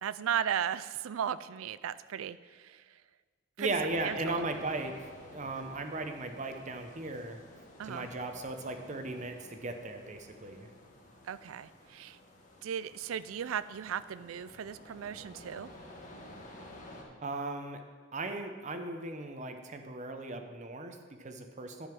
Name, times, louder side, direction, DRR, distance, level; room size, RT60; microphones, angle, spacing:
voice 1, 0.0-3.0 3.6-3.7 4.0-4.5 7.8-8.1 11.2-12.2 12.6-15.7, right 8 dB, 80° right, 16 dB, 0.4 m, -36 dB
voice 2, 3.6-7.4 7.8-10.7 17.2-17.8 18.1-21.9, right 2 dB, 35° right, 6 dB, 0.8 m, -37 dB
sound 1, 3.7-17.0, left 1 dB, 40° left, 1.4 m, -52 dB
10.5 x 5.4 x 6.0 m, 1.5 s
head